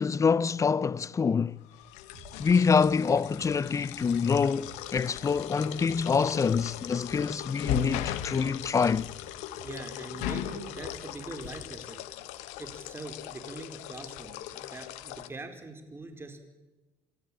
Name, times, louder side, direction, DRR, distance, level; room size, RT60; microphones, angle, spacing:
voice 1, 0.0-1.6 2.4-9.1, left 5 dB, 25° left, 0.7 m, -26 dB
sound 1, 1.7-15.3, left 11 dB, 75° left, 1.4 m, -39 dB
sound 2, 2.1-12.0, right 6 dB, 60° right, 3.6 m, -53 dB
voice 2, 9.6-12.0 12.6-16.4, right 2 dB, 20° right, 4.5 m, -43 dB
28.0 x 14.0 x 9.0 m
supercardioid pair, 80°, 12 cm